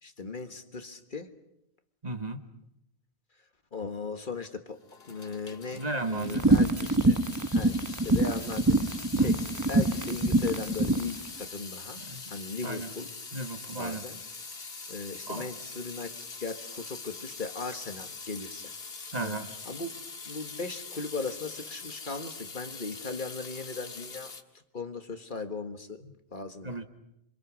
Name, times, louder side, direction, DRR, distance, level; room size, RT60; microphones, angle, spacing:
voice 1, 0.0-1.3 3.7-4.8 5.1-5.8 6.1-7.2 7.5-8.8 9.1-9.4 9.7-12.0 12.3-13.1 13.7-14.2 14.9-16.1 16.4-18.7 19.2-19.4 19.6-19.9 20.2-24.3 24.7-26.0 26.3-26.7, left 4 dB, 55° left, 8 dB, 1.7 m, -37 dB
voice 2, 2.0-2.4 5.7-6.4 9.1-9.4 12.0-12.2 12.6-12.9 13.3-14.0 15.3-15.5 19.1-19.5 26.6-26.8, right 2 dB, 40° right, 7 dB, 1.7 m, -35 dB
Water tap faucet / Sink (filling or washing) / Drip, 4.8-24.4, left 4 dB, 75° left, 1.9 m, -43 dB
sound 1, 6.2-11.1, right 2 dB, 20° right, 1.1 m, -24 dB
27.5 x 26.0 x 6.2 m, 0.79 s
omnidirectional pair, 1.0 m